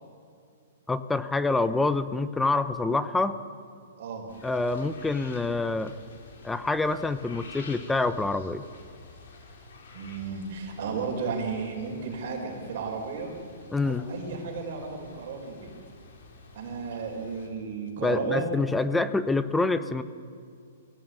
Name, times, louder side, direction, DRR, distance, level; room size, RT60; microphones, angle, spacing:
voice 1, 0.9-3.4 4.4-5.9 6.4-8.6 13.7-14.1 18.0-20.0, left 3 dB, 5° left, 12 dB, 0.7 m, -26 dB
voice 2, 4.0-4.3 9.9-13.3 13.9-15.7 16.5-18.5, right 5 dB, 50° right, 0 dB, 5.1 m, -33 dB
sound 1, 4.3-17.5, left 4 dB, 65° left, 4.5 m, -50 dB
23.0 x 16.5 x 9.1 m, 2.3 s
hypercardioid pair, 165°, 0 cm